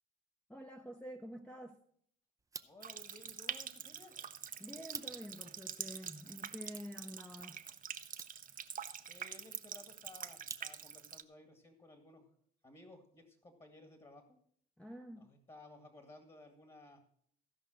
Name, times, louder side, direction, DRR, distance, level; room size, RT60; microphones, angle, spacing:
voice 1, 0.5-1.8 4.6-7.6 14.8-15.3, equal, 5° left, 0.8 m, -48 dB
sound 1, 2.4-11.1, right 3 dB, 15° right, 0.6 m, -55 dB
voice 2, 2.6-4.1 9.1-12.3 12.6-14.3 15.1-17.0, left 2 dB, 25° left, 2.1 m, -57 dB
Water tap faucet, 2.8-11.2, right 8 dB, 45° right, 0.8 m, -45 dB
15.0 x 5.4 x 6.4 m
cardioid pair, 90°, 20 cm